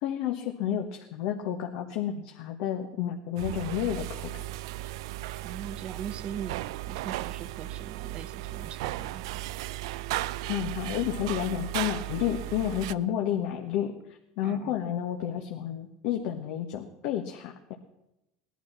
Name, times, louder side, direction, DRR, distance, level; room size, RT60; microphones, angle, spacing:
voice 1, 0.0-4.4 10.5-13.9 14.4-17.7, left 10 dB, 70° left, 2 dB, 1.4 m, -31 dB
sound 1, 3.4-12.9, right 15 dB, 80° right, 0.4 m, -36 dB
voice 2, 5.4-9.4 14.4-14.8, right 8 dB, 45° right, 11 dB, 1.0 m, -41 dB
17.5 x 11.0 x 5.9 m, 0.89 s
supercardioid pair, 110°, 3 cm